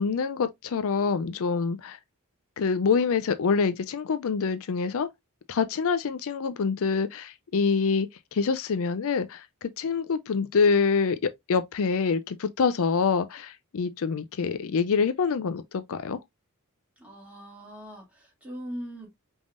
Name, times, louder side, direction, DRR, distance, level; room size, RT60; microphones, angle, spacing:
voice 1, 0.0-2.0 2.6-5.1 5.5-16.2, left 5 dB, 65° left, 0.4 m, -26 dB
voice 2, 17.0-19.1, equal, 5° right, 2.4 m, -40 dB
5.1 x 3.5 x 2.4 m
head